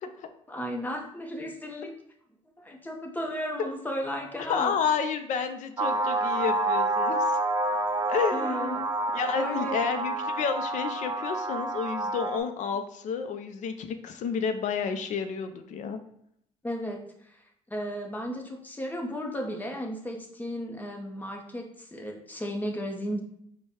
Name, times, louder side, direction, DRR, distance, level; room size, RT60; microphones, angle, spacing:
voice 1, 0.5-1.9 2.6-4.8 8.3-8.9 9.3-9.8 16.6-17.0 17.7-23.2, equal, 15° left, 1 dB, 0.9 m, -34 dB
voice 2, 4.5-7.2 8.1-8.8 9.1-16.0, left 6 dB, 65° left, 8 dB, 0.5 m, -30 dB
sound 1, 5.8-12.4, right 2 dB, 30° right, 0.5 m, -28 dB
4.6 x 2.3 x 4.3 m, 0.72 s
cardioid pair, 80°, 14 cm